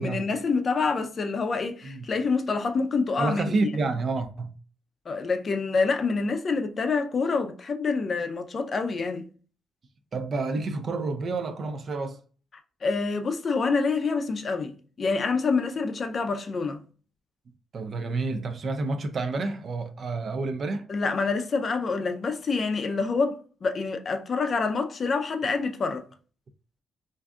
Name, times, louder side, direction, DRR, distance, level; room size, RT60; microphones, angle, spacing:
voice 1, 0.0-3.7 5.1-9.3 12.8-16.8 20.9-26.0, left 4 dB, 45° left, 0.5 m, -27 dB
voice 2, 3.2-4.5 10.1-12.2 17.7-20.9, right 3 dB, 50° right, 0.5 m, -29 dB
2.6 x 2.3 x 3.5 m
cardioid pair, 90°, 0 cm